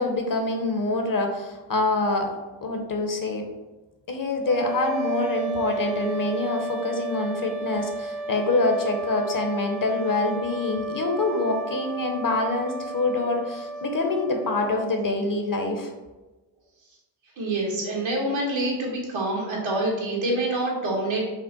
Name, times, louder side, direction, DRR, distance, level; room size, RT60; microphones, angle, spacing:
voice 1, 0.0-3.4 4.1-15.9, left 2 dB, 45° left, 4 dB, 0.8 m, -25 dB
sound 1, 4.4-15.4, right 4 dB, 45° right, 0.6 m, -33 dB
voice 2, 17.4-21.2, right 1 dB, 80° right, -3 dB, 1.4 m, -26 dB
5.3 x 2.1 x 3.9 m, 1.1 s
cardioid pair, 55°, 46 cm